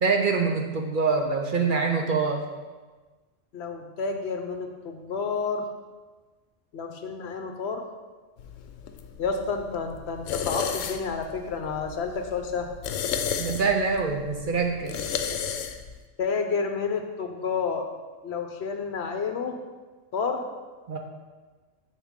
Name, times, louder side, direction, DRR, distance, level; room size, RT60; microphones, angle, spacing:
voice 1, 0.0-2.4 13.4-14.9 20.9-21.0, right 4 dB, 50° right, 2 dB, 0.7 m, -25 dB
voice 2, 3.5-5.7 6.7-7.8 9.2-12.7 16.2-17.9 18.2-19.6 20.1-20.5, left 5 dB, 65° left, 5 dB, 0.9 m, -30 dB
sound 1, 8.4-16.0, left 7 dB, 85° left, 0.9 m, -33 dB
7.0 x 6.4 x 3.6 m, 1.3 s
omnidirectional pair, 1.3 m